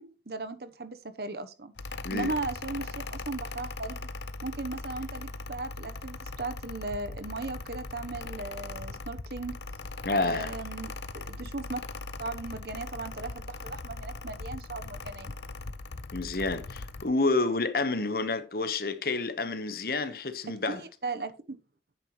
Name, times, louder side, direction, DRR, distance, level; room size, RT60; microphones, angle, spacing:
voice 1, 0.0-1.7 2.1-4.1 4.4-9.6 10.1-11.8 12.2-15.3 20.7-21.6, right 3 dB, 60° right, 1.0 m, -37 dB
Mechanical fan, 1.8-17.1, left 3 dB, 80° left, 0.8 m, -40 dB
voice 2, 10.0-10.5 16.1-20.8, left 3 dB, 55° left, 1.2 m, -29 dB
11.0 x 9.1 x 3.2 m
head